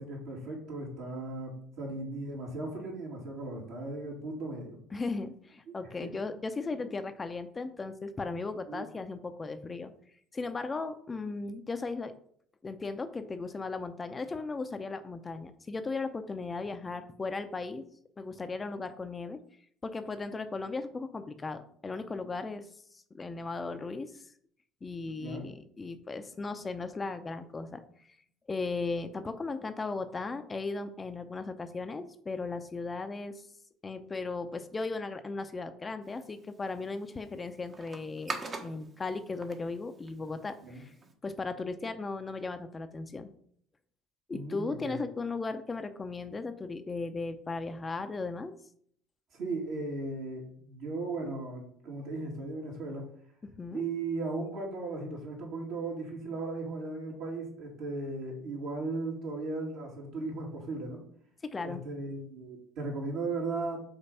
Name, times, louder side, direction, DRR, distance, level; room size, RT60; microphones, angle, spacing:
voice 1, 0.0-4.8 5.8-6.2 6.7-6.9 8.7-8.8 25.2-25.5 40.6-40.8 44.3-45.0 49.3-53.1 53.7-61.0 61.6-63.8, right 3 dB, 65° right, -2 dB, 2.7 m, -37 dB
voice 2, 4.9-9.9 10.3-12.1 12.6-17.8 18.2-19.4 19.8-22.7 22.9-24.3 24.8-27.8 28.5-33.5 33.8-40.9 41.2-43.3 44.3-48.5 53.6-53.8 61.5-61.8, left 3 dB, 25° left, 9 dB, 0.6 m, -36 dB
sound 1, 36.0-41.1, right 3 dB, 35° right, 1.1 m, -45 dB
5.3 x 4.0 x 5.5 m, 0.64 s
hypercardioid pair, 65°, 0 cm